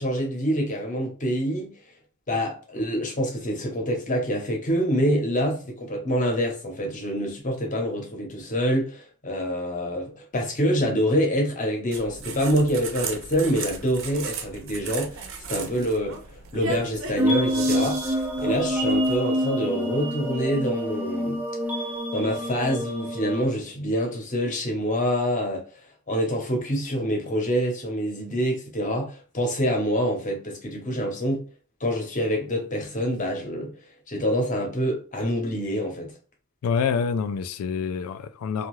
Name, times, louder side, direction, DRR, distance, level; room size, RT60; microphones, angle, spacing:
voice 1, 0.0-1.7 2.3-16.2 16.5-18.0 18.4-21.4 22.1-25.6 26.1-31.4 31.8-33.7 34.1-36.1, equal, 35° left, 0.8 m, -26 dB
sound 1, 11.9-19.2, right 4 dB, 60° right, 0.5 m, -36 dB
sound 2, 17.2-23.5, equal, 10° right, 0.4 m, -27 dB
voice 2, 36.6-38.7, left 6 dB, 90° left, 0.3 m, -26 dB
2.7 x 2.3 x 3.1 m
head